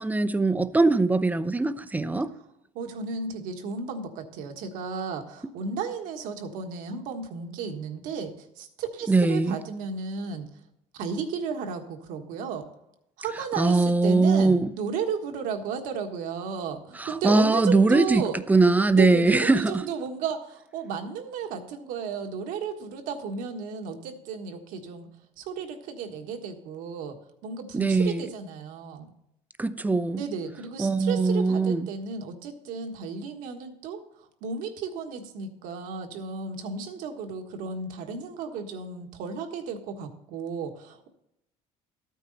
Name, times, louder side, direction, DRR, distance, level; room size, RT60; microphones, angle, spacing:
voice 1, 0.0-2.3 9.1-9.6 13.6-14.7 16.9-19.8 27.7-28.3 29.6-30.2 30.8-31.9, right 3 dB, 10° right, 0.7 m, -22 dB
voice 2, 2.7-10.5 11.0-12.7 13.2-18.4 18.9-25.1 25.4-27.2 27.4-29.1 30.1-41.1, right 5 dB, 75° right, 1.5 m, -34 dB
13.5 x 9.2 x 4.1 m
supercardioid pair, 90°, 14 cm